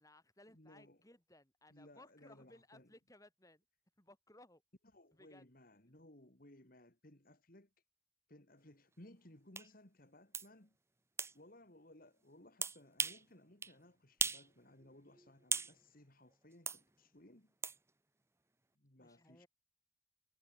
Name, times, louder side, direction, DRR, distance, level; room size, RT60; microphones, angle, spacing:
voice 1, 0.0-3.6 4.0-4.6 5.1-5.4 19.0-19.5, left 1 dB, 15° left, 7.4 m, -62 dB
voice 2, 0.5-1.0 1.7-2.9 4.9-7.7 8.3-10.8 11.3-17.5 18.8-19.4, left 1 dB, 45° left, 3.0 m, -61 dB
sound 1, 9.5-9.7 10.3-10.5 11.2-11.3 12.6-13.2 13.6-13.7 14.2-14.5 14.8-15.7 16.7-16.8 17.6-17.8, right 5 dB, 15° right, 0.7 m, -37 dB
head